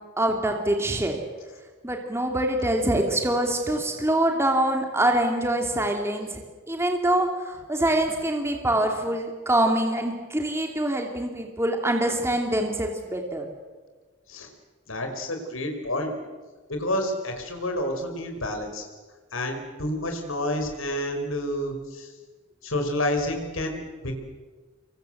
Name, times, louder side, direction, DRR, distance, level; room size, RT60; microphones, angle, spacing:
voice 1, 0.2-1.2 1.8-6.4 6.7-13.5, right 1 dB, 15° right, 3 dB, 2.6 m, -24 dB
voice 2, 14.9-16.1 16.7-18.8 19.3-22.1 22.6-24.2, left 1 dB, 85° left, 5 dB, 5.1 m, -29 dB
26.0 x 24.0 x 7.9 m, 1.3 s
head